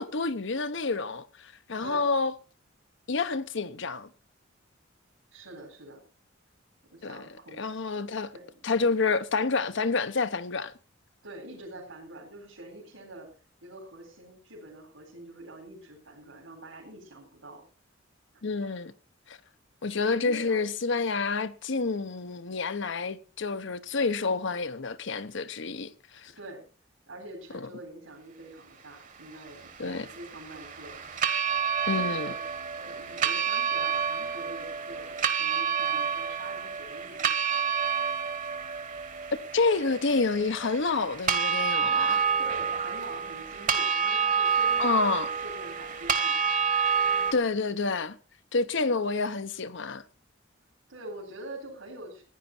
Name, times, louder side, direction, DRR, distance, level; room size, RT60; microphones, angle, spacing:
voice 1, 0.0-2.3 3.1-4.1 7.0-7.3 7.6-8.3 8.6-10.7 18.4-18.9 19.3-19.4 19.8-26.3 27.6-27.7 29.8-30.1 31.9-32.3 39.5-42.2 44.8-45.3 47.3-48.2 48.5-50.0, left 4 dB, 65° left, 0.9 m, -28 dB
voice 2, 5.3-6.0 6.9-7.7 8.3-8.6 11.2-13.3 13.6-17.6 18.6-18.7 20.1-20.7 26.4-26.6 27.1-31.1 31.9-32.4 32.7-37.7 42.4-46.5 50.9-52.2, right 1 dB, 80° right, 4.0 m, -45 dB
sound 1, 29.3-47.3, right 6 dB, 40° right, 1.3 m, -29 dB
15.0 x 10.0 x 4.4 m
head